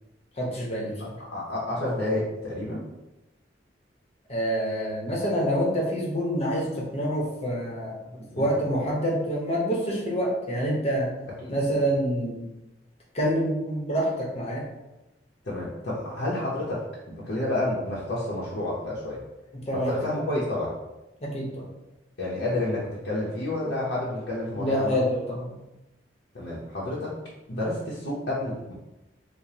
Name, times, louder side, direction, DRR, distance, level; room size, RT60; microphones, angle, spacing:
voice 1, 0.4-1.2 4.3-11.1 11.5-12.5 13.1-14.6 19.5-20.0 21.2-21.7 24.6-25.6, equal, 35° left, -3 dB, 1.0 m, -27 dB
voice 2, 1.3-2.8 8.2-8.5 11.4-11.5 15.4-16.8 17.1-19.2 19.7-20.7 22.2-25.0 26.3-27.1 27.5-28.7, left 1 dB, 65° left, -7 dB, 0.8 m, -29 dB
4.9 x 2.2 x 2.8 m, 0.99 s
head